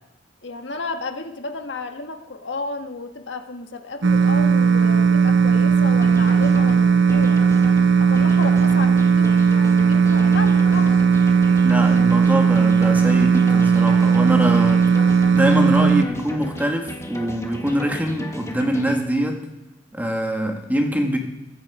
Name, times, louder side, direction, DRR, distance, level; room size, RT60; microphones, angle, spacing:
voice 1, 0.4-7.4 8.0-9.3 9.9-11.1, left 3 dB, 75° left, 6 dB, 1.5 m, -32 dB
sound 1, 4.0-16.0, right 6 dB, 70° right, 0.7 m, -16 dB
sound 2, 6.0-19.0, equal, 15° left, 1.6 m, -35 dB
voice 2, 11.6-14.9 15.3-19.4 19.9-21.2, equal, 10° right, 3 dB, 1.9 m, -23 dB
22.5 x 8.5 x 4.9 m, 1.0 s
head